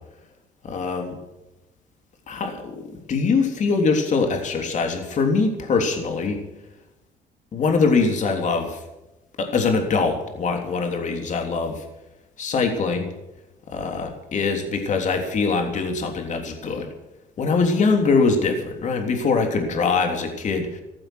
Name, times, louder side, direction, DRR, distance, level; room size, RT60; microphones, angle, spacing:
voice 1, 0.6-1.1 2.3-6.4 7.5-8.8 9.4-11.8 12.4-13.1 13.7-16.9 17.4-20.8, left 4 dB, 45° left, 4 dB, 3.4 m, -23 dB
15.0 x 15.0 x 6.3 m, 0.99 s
cardioid pair, 110°, 17 cm